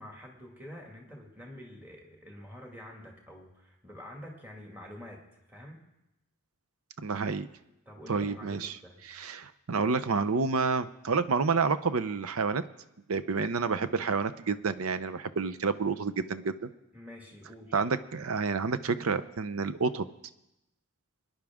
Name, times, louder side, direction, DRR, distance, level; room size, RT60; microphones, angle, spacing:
voice 1, 0.0-5.2 5.5-5.8 7.9-9.0 16.9-17.8, left 1 dB, 10° right, -1 dB, 2.0 m, -47 dB
voice 2, 7.0-7.5 8.1-8.7 9.1-12.6 13.1-16.7 17.7-20.0, right 4 dB, 80° right, 13 dB, 0.7 m, -29 dB
24.0 x 10.5 x 3.6 m, 0.90 s
head